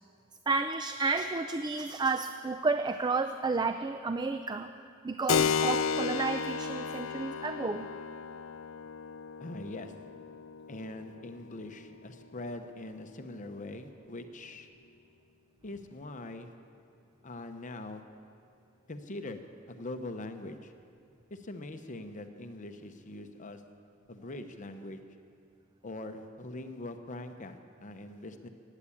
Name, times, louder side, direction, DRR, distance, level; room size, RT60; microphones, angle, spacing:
voice 1, 0.5-4.7 5.0-7.9, right 4 dB, 20° right, 8 dB, 0.4 m, -31 dB
Keyboard (musical), 5.3-13.5, left 6 dB, 85° left, 0.5 m, -34 dB
voice 2, 9.4-9.9 10.7-14.7 15.6-16.5 17.2-18.0 18.9-19.4 19.7-20.7 21.3-23.6 24.1-25.0 25.8-28.5, left 2 dB, 40° left, 7 dB, 0.8 m, -42 dB
15.5 x 10.0 x 8.5 m, 2.5 s
head